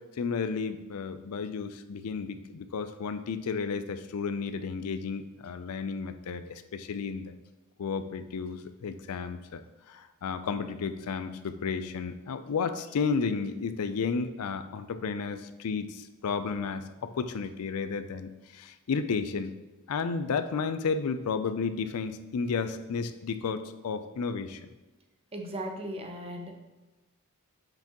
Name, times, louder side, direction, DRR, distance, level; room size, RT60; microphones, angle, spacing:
voice 1, 0.2-7.3 7.8-19.5 19.9-24.6, left 5 dB, 80° left, 10 dB, 0.4 m, -32 dB
voice 2, 25.3-26.6, right 1 dB, 25° right, 4 dB, 0.7 m, -37 dB
6.7 x 5.9 x 2.9 m, 1.1 s
head